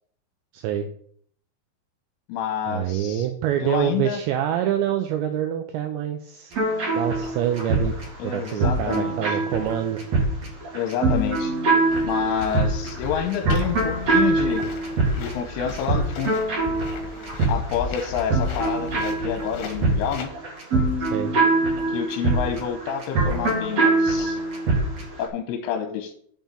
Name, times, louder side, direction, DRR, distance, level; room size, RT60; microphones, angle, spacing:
voice 1, 0.5-0.9 2.7-6.5 7.0-8.0 8.2-10.0 21.1-21.3, right 10 dB, 85° right, 6 dB, 2.6 m, -26 dB
voice 2, 2.3-3.3 3.6-4.2 8.2-9.4 10.7-11.6 12.0-14.6 15.2-16.4 17.5-20.3 21.9-24.4 25.2-26.2, left 8 dB, 85° left, 5 dB, 3.2 m, -28 dB
sound 1, 6.5-25.1, right 2 dB, 45° right, 2.7 m, -24 dB
sound 2, 11.7-20.2, left 4 dB, 65° left, 3.2 m, -36 dB
7.4 x 5.5 x 7.2 m, 0.62 s
omnidirectional pair, 5.8 m